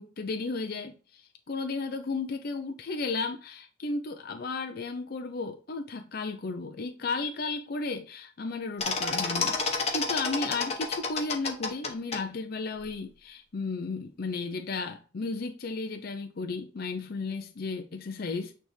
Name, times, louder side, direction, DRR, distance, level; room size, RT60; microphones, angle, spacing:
voice 1, 0.0-18.5, left 3 dB, 50° left, 0.5 m, -34 dB
sound 1, 8.8-12.2, left 4 dB, 35° left, 1.1 m, -30 dB
8.9 x 3.5 x 3.2 m
head